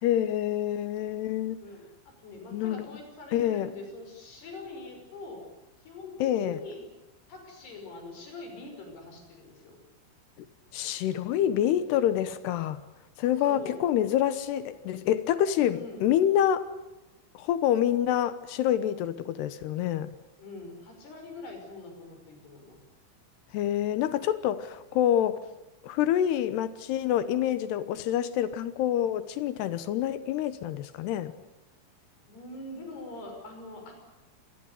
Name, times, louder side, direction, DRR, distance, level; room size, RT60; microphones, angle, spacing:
voice 1, 0.0-1.6 2.5-2.8 3.3-3.7 6.2-6.6 10.7-12.8 13.2-16.6 17.3-20.1 23.5-25.4 25.8-31.3, left 11 dB, 70° left, 14 dB, 2.7 m, -27 dB
voice 2, 1.6-5.4 5.8-6.8 7.3-9.8 13.5-13.8 15.7-16.0 20.4-22.8 32.3-33.9, left 2 dB, 55° left, 4 dB, 7.7 m, -44 dB
26.5 x 20.0 x 8.2 m, 1.0 s
omnidirectional pair, 5.7 m